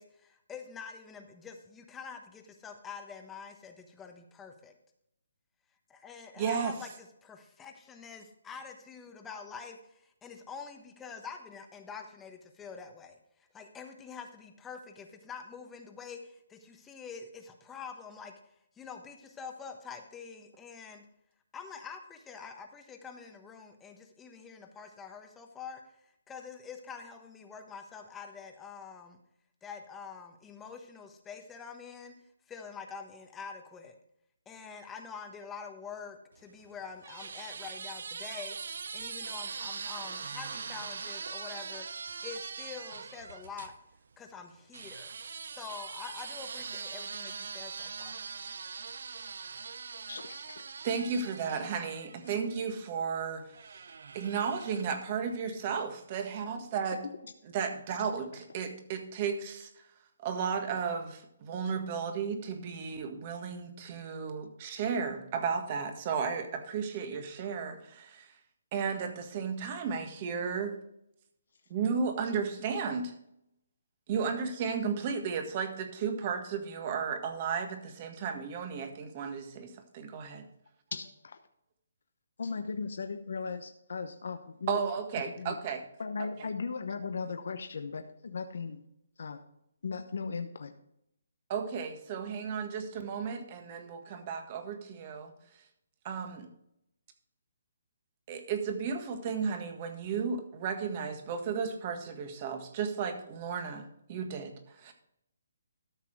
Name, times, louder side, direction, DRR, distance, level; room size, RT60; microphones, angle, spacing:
voice 1, 0.0-4.7 5.9-13.2 13.5-18.3 18.7-21.1 21.5-29.2 29.6-32.1 32.5-34.0 34.5-38.6 38.9-41.9 42.2-43.7 44.2-45.1 45.5-48.2, left 6 dB, 10° left, 5 dB, 1.2 m, -46 dB
voice 2, 6.4-6.7 50.8-53.8 54.1-57.0 57.5-59.7 60.2-68.3 68.7-70.8 71.7-73.1 74.1-80.4 84.7-85.8 86.2-86.5 91.5-95.3 96.0-96.5 98.3-104.9, right 6 dB, 35° right, 6 dB, 1.7 m, -34 dB
sound 1, 36.4-43.8 44.7-52.6 53.5-55.1, right 5 dB, 70° right, 0.6 m, -42 dB
voice 3, 50.1-50.6 80.9-81.4 82.4-84.8 85.2-85.6 86.0-88.8 89.2-89.4 89.8-90.7, left 5 dB, 70° left, 6 dB, 0.9 m, -37 dB
13.5 x 6.0 x 4.6 m, 0.76 s
hypercardioid pair, 155°, 0 cm